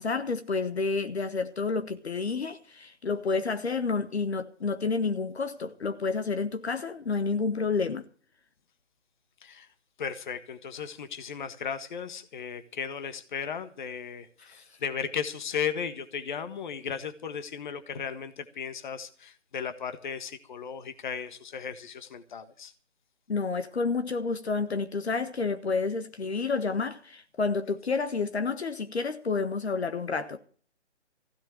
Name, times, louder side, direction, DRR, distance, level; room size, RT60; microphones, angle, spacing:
voice 1, 0.0-8.0 14.4-14.5 23.3-30.4, left 4 dB, 60° left, 1.5 m, -29 dB
voice 2, 10.0-22.7, left 7 dB, 40° left, 1.6 m, -36 dB
16.0 x 7.4 x 9.0 m
figure-of-eight pair, 145°, 36 cm